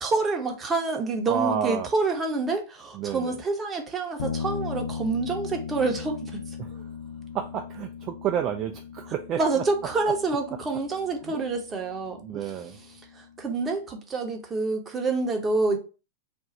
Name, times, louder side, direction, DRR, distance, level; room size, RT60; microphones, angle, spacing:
voice 1, 0.0-6.4 9.4-12.5 13.2-15.8, right 3 dB, 20° right, 0.7 m, -27 dB
voice 2, 1.3-1.9 2.9-3.4 6.6-6.9 7.3-9.6 11.2-11.4 12.2-12.8, right 9 dB, 35° right, 0.3 m, -30 dB
sound 1, 4.2-13.7, left 6 dB, 65° left, 0.4 m, -38 dB
2.5 x 2.3 x 4.0 m
figure-of-eight pair, 100°, 0 cm